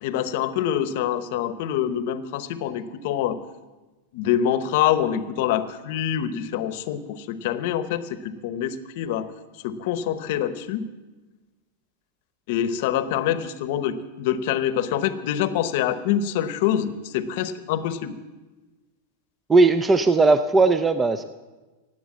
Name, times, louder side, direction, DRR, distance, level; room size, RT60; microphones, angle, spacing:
voice 1, 0.0-3.4 4.1-9.3 9.6-10.8 12.5-18.2, left 10 dB, 50° left, 13 dB, 0.8 m, -25 dB
voice 2, 19.5-21.2, right 3 dB, 10° right, 11 dB, 0.4 m, -18 dB
18.0 x 8.0 x 7.3 m, 1.2 s
supercardioid pair, 170°, 0 cm